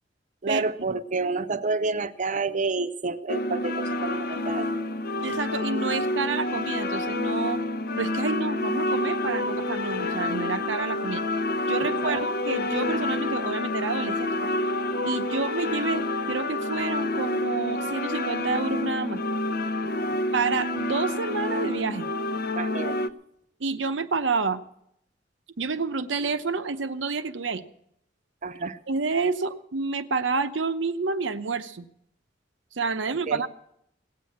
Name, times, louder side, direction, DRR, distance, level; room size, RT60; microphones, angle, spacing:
voice 1, 0.4-4.7 12.0-12.2 22.5-23.0 28.4-28.8 33.1-33.4, right 3 dB, 45° right, 13 dB, 0.7 m, -29 dB
sound 1, 3.3-23.1, left 2 dB, 55° left, 0.6 m, -28 dB
voice 2, 5.2-7.6 7.9-11.2 11.7-14.5 15.0-19.2 20.3-22.1 23.6-24.6 25.6-27.6 28.9-31.8 32.7-33.5, right 4 dB, 90° right, 11 dB, 0.8 m, -29 dB
18.0 x 7.7 x 8.4 m, 0.76 s
head